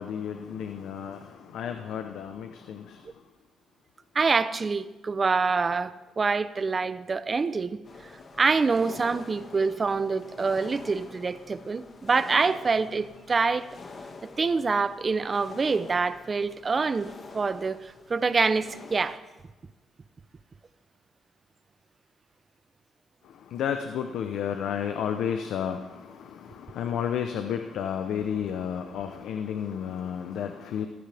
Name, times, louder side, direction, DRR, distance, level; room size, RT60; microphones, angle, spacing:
voice 1, 0.0-3.0 23.5-30.9, left 8 dB, 80° left, 6 dB, 0.9 m, -32 dB
voice 2, 4.1-7.8 8.4-13.7 14.2-19.2, right 4 dB, 35° right, 14 dB, 0.8 m, -26 dB
sound 1, 7.8-19.2, left 3 dB, 40° left, 2.0 m, -46 dB
21.0 x 15.0 x 3.5 m, 1.2 s
cardioid pair, 90°, 0 cm